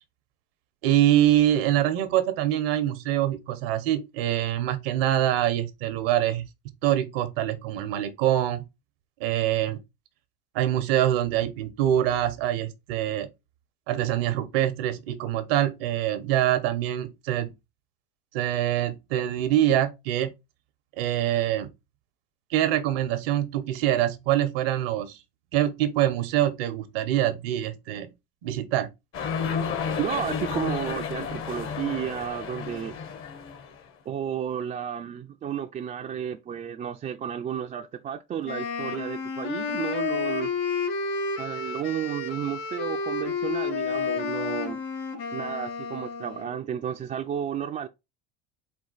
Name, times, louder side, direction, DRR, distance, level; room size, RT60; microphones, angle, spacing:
voice 1, 0.8-6.4 6.8-8.6 9.2-9.8 10.5-13.3 13.9-17.5 18.3-20.3 21.0-21.7 22.5-25.2 25.5-28.1 28.4-28.9, right 12 dB, 80° right, 0.9 m, -24 dB
sound 1, 29.1-33.8, left 6 dB, 45° left, 0.9 m, -31 dB
voice 2, 30.0-33.0 34.1-40.5 41.4-44.8 45.3-47.9, right 9 dB, 30° right, 0.3 m, -32 dB
Wind instrument woodwind instrument, 38.4-46.5, left 5 dB, 70° left, 2.1 m, -31 dB
4.4 x 2.4 x 3.8 m
supercardioid pair, 95°, 29 cm